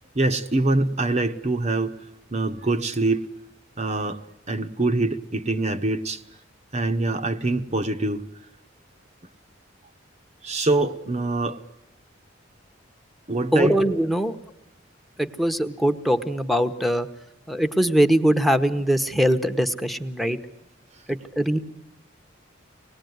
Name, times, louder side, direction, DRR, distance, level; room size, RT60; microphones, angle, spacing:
voice 1, 0.1-2.0 2.3-3.3 3.8-4.2 4.5-6.2 6.7-8.2 10.4-11.6 13.3-13.8, right 2 dB, 35° right, 1.0 m, -24 dB
voice 2, 13.5-14.3 15.2-17.1 17.5-20.4 21.1-21.6, equal, ahead, 1.1 m, -22 dB
25.0 x 19.5 x 9.4 m
head